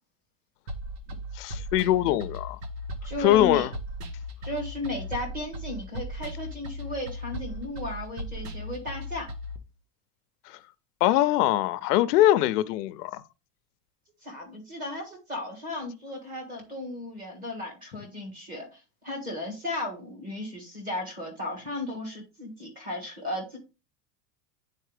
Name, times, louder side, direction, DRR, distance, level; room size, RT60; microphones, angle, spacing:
sound 1, 0.7-9.6, equal, 75° right, 1.3 m, -37 dB
voice 1, 1.3-2.6 3.2-3.7 10.5-10.6 11.0-13.2, left 14 dB, 80° left, 0.6 m, -22 dB
voice 2, 3.0-3.7 4.4-9.3 14.2-23.6, left 1 dB, 20° right, 1.6 m, -35 dB
9.0 x 4.1 x 3.2 m
supercardioid pair, 175°, 47 cm